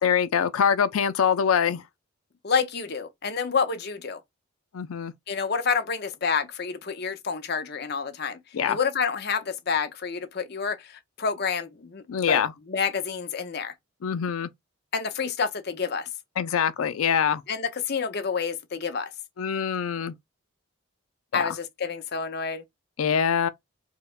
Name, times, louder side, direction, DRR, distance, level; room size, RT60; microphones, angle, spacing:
voice 1, 0.0-1.8 4.7-5.1 8.5-8.8 12.1-12.5 14.0-14.5 16.4-17.4 19.4-20.1 21.3-21.5 23.0-23.5, left 7 dB, 85° left, 0.4 m, -24 dB
voice 2, 2.4-4.2 5.3-8.4 8.7-12.4 12.7-13.7 14.9-16.1 17.5-19.1 21.3-22.6, left 5 dB, 50° left, 0.7 m, -28 dB
4.8 x 2.1 x 2.3 m
head